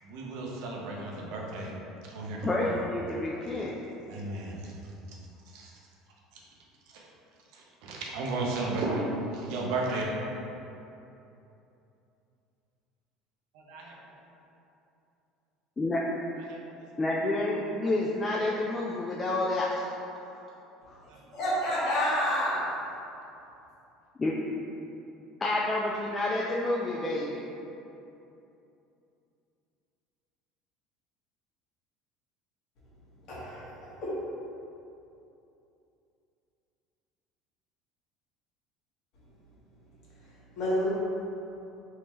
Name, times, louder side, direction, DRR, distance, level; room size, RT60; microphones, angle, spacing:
voice 1, 0.0-1.7 2.0-2.8 4.1-4.7 5.5-5.7 6.3-6.4 6.9-7.1 7.5-9.1 9.3-10.4 13.5-13.9 16.5-16.6 21.1-21.2, right 2 dB, 75° right, -2 dB, 0.6 m, -34 dB
voice 2, 2.4-3.8 15.8-16.0 17.0-19.9 20.3-20.4 20.9-21.0 24.2-24.3 25.4-27.4, left 2 dB, 20° left, -4 dB, 0.3 m, -29 dB
voice 3, 21.3-22.6 33.3-33.7 34.0-34.1 40.2-40.9, equal, 60° left, -9 dB, 1.4 m, -29 dB
3.5 x 2.7 x 3.0 m, 2.8 s
supercardioid pair, 115°, 0 cm